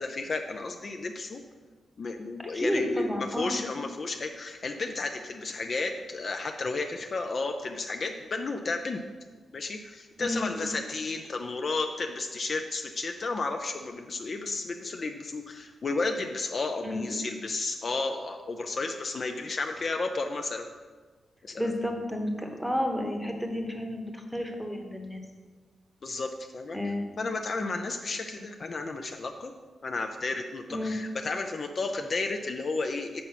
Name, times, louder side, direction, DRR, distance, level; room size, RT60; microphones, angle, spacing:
voice 1, 0.0-1.4 2.0-9.0 9.5-20.7 21.4-21.7 26.0-26.8 27.2-29.5 29.8-33.2, left 3 dB, 40° left, 4 dB, 0.5 m, -32 dB
voice 2, 2.4-3.6 10.2-10.7 16.8-17.2 21.6-25.2 26.7-27.0 30.7-31.0, left 1 dB, ahead, 3 dB, 1.0 m, -31 dB
7.5 x 5.5 x 5.8 m, 1.4 s
wide cardioid pair, 150°, 0 cm